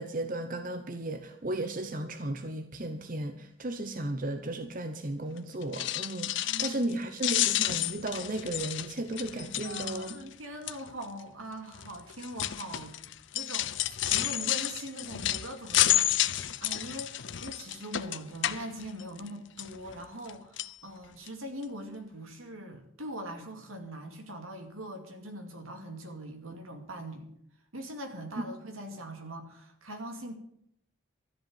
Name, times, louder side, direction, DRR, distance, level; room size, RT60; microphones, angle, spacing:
voice 1, 0.0-10.2, right 1 dB, 40° right, 8 dB, 0.8 m, -35 dB
sound 1, 5.6-6.9 7.2-10.3 10.7-11.0 11.7-19.3 19.6-20.3 20.6-20.7 21.3-21.4 21.6-21.7, left 13 dB, 60° left, 0.6 m, -30 dB
voice 2, 6.4-7.0 9.6-13.0 13.3-13.7 14.0-27.3 27.7-30.3, right 1 dB, 80° right, 5 dB, 2.5 m, -42 dB
13.5 x 8.0 x 8.8 m, 0.72 s
head